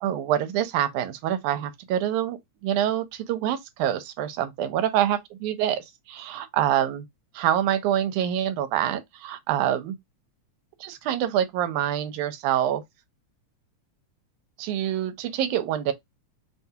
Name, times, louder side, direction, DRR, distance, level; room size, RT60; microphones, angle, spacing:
voice 1, 0.0-7.1 7.4-10.0 10.8-12.8 14.6-15.9, right 11 dB, 80° right, 2.0 m, -26 dB
5.9 x 2.2 x 2.7 m
omnidirectional pair, 3.5 m